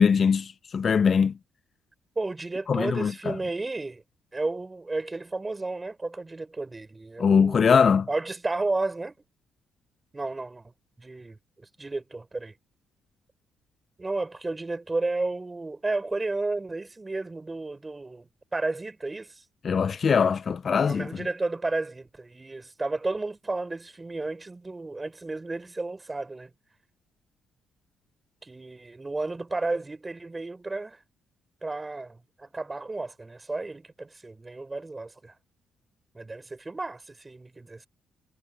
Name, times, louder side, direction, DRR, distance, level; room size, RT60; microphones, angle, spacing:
voice 1, 0.0-1.3 2.7-3.3 7.2-8.1 19.6-21.1, left 6 dB, 45° left, 0.4 m, -21 dB
voice 2, 2.2-4.0 4.3-7.7 8.1-9.1 10.1-10.7 11.0-12.5 14.0-19.4 20.8-26.5 28.4-31.0 31.6-35.4 36.1-37.9, right 3 dB, 20° right, 4.4 m, -32 dB
cardioid pair, 90°, 0 cm